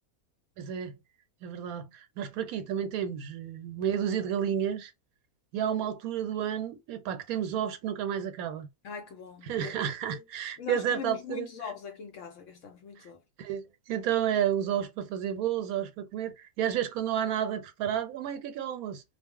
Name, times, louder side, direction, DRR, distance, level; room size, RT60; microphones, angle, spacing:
voice 1, 0.6-0.9 1.4-4.9 5.5-8.7 9.5-11.5 13.4-19.0, right 9 dB, 80° right, 1.1 m, -31 dB
voice 2, 8.8-9.8 10.1-10.2 10.6-13.2, left 7 dB, 65° left, 0.9 m, -41 dB
2.4 x 2.0 x 3.6 m
omnidirectional pair, 1.5 m